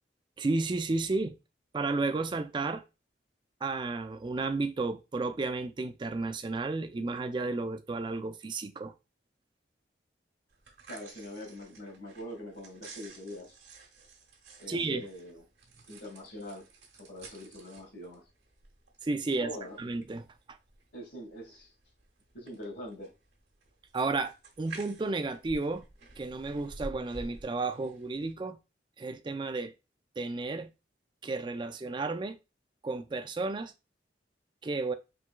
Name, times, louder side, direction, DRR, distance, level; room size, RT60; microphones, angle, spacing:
voice 1, 0.4-1.4 1.7-2.8 3.6-8.9 14.7-15.1 19.0-19.5 19.8-20.6 23.9-25.8 26.2-28.6 29.0-29.7 30.2-30.7 31.2-32.4 32.8-33.7 34.6-34.9, right 3 dB, 25° right, 0.3 m, -32 dB
sound 1, 10.5-28.3, right 3 dB, 70° right, 1.4 m, -51 dB
voice 2, 10.9-13.6 14.6-15.4 15.9-16.7 17.0-18.2 19.4-19.8 20.9-21.7 22.3-23.1, left 1 dB, 65° left, 2.2 m, -43 dB
4.6 x 3.5 x 2.3 m
head